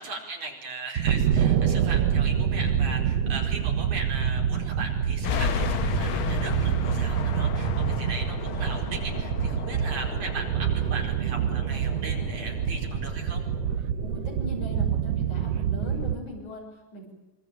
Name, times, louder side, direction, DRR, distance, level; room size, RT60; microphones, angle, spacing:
voice 1, 0.0-13.4, right 3 dB, 90° right, 1 dB, 6.2 m, -38 dB
sound 1, 1.0-16.2, right 8 dB, 65° right, 2.1 m, -26 dB
sound 2, 5.2-13.8, left 8 dB, 55° left, 1.6 m, -34 dB
voice 2, 9.6-9.9 14.0-16.6 16.9-17.1, left 1 dB, 75° left, -1 dB, 7.9 m, -40 dB
26.0 x 24.5 x 8.9 m, 0.92 s
omnidirectional pair, 3.4 m